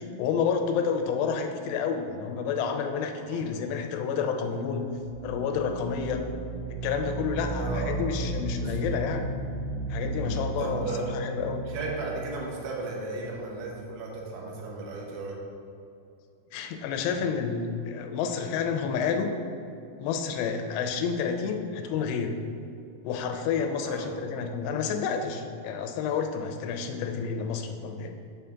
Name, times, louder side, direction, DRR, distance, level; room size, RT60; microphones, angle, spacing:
voice 1, 0.0-4.9 5.2-6.2 6.7-9.4 9.9-11.7 16.5-19.3 20.0-22.4 23.0-28.2, left 6 dB, 90° left, 6 dB, 2.8 m, -30 dB
sound 1, 4.9-13.6, right 2 dB, 60° right, 1.4 m, -35 dB
voice 2, 7.6-8.0 8.6-8.8 10.4-11.0 11.7-15.4 23.8-24.1, right 3 dB, 80° right, -2 dB, 3.2 m, -35 dB
7.5 x 3.6 x 5.7 m, 2.6 s
omnidirectional pair, 4.8 m